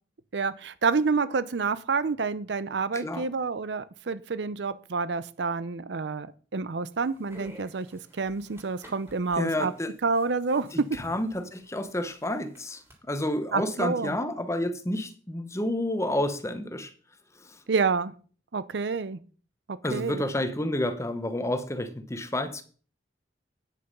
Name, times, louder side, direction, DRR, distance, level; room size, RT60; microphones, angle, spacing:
voice 1, 0.3-6.3 6.5-7.9 8.2-9.7 10.0-10.9 13.5-14.2 17.7-18.1 18.5-19.2 19.9-20.3, right 4 dB, 70° right, 0.6 m, -28 dB
voice 2, 2.9-3.3 9.4-10.0 10.7-16.9 17.4-17.6 19.8-22.6, left 1 dB, 15° left, 0.9 m, -30 dB
sound 1, 7.0-12.9, equal, 15° right, 3.5 m, -51 dB
9.3 x 6.6 x 5.4 m
head